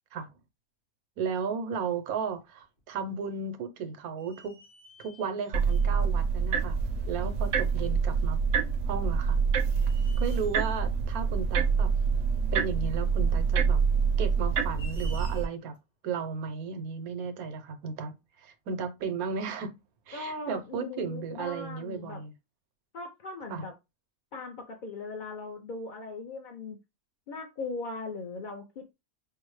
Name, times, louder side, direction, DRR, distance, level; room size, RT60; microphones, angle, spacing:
voice 1, 1.2-4.6 5.0-6.8 7.1-8.4 8.9-9.4 10.2-11.9 12.5-13.8 14.2-15.7 16.0-19.7 20.1-22.3 23.5-23.6, right 5 dB, 85° right, 1.2 m, -34 dB
sound 1, 1.6-1.7 2.2-2.9 3.2-3.3 4.2-6.0 7.0-7.1 9.0-9.2 9.7-10.8 12.6-12.7 14.3-15.8, equal, 75° left, 2.8 m, -53 dB
sound 2, 5.5-15.4, right 5 dB, 70° right, 0.9 m, -26 dB
voice 2, 20.1-22.2 22.9-23.7 24.3-26.8 27.3-28.9, left 3 dB, 55° left, 0.5 m, -39 dB
5.5 x 2.0 x 3.1 m
omnidirectional pair, 1.5 m